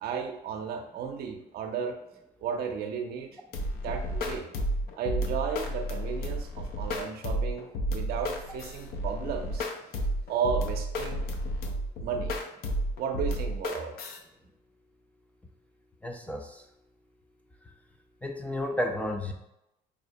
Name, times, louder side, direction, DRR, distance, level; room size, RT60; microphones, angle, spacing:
voice 1, 0.0-2.0 2.4-3.4 3.7-4.5 5.0-9.7 10.3-11.3 12.0-12.3 13.0-13.9, right 6 dB, 65° right, 4 dB, 0.6 m, -34 dB
sound 1, 3.5-14.2, equal, 65° left, 0.5 m, -32 dB
voice 2, 16.0-16.7 18.2-19.3, left 1 dB, 10° left, 2 dB, 0.4 m, -32 dB
5.0 x 2.1 x 2.6 m, 0.86 s
cardioid pair, 110°, 17 cm